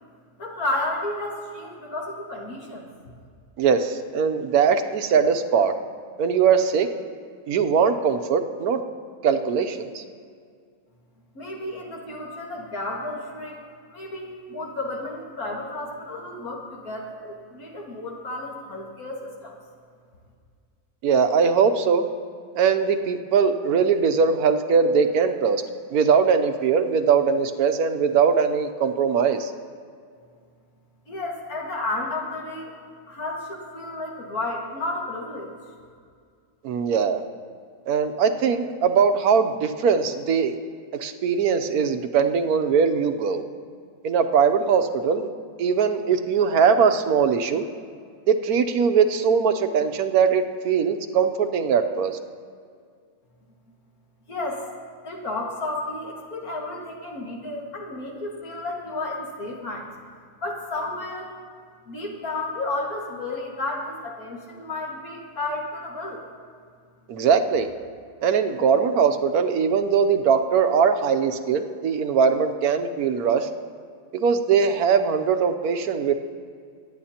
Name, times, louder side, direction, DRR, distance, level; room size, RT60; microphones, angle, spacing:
voice 1, 0.4-2.9 11.3-13.6 13.9-19.6 31.1-32.7 33.1-35.5 54.3-54.6 55.0-59.9 60.4-61.4 61.9-66.2, left 2 dB, 75° left, -1 dB, 2.3 m, -32 dB
voice 2, 3.6-5.7 6.2-6.9 7.5-8.8 9.2-10.0 21.0-22.0 22.5-25.6 25.9-29.5 36.6-37.2 37.9-40.5 41.0-43.4 44.0-45.3 45.6-47.6 48.3-52.2 67.1-67.7 68.2-73.5 74.1-76.1, right 6 dB, 85° right, 7 dB, 1.2 m, -21 dB
23.5 x 10.0 x 2.9 m, 2.1 s
omnidirectional pair, 1.5 m